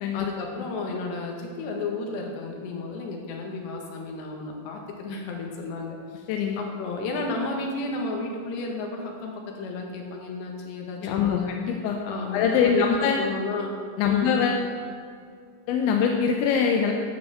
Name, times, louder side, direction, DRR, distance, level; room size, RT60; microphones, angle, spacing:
voice 1, 0.1-6.3 6.6-11.5 12.1-13.7 14.0-14.4, left 3 dB, 65° left, 0 dB, 3.6 m, -32 dB
voice 2, 6.3-6.6 11.0-12.0 12.3-13.2 14.0-14.6 15.7-16.9, left 6 dB, 80° left, 2 dB, 3.0 m, -23 dB
11.5 x 7.9 x 8.0 m, 2.2 s
omnidirectional pair, 5.7 m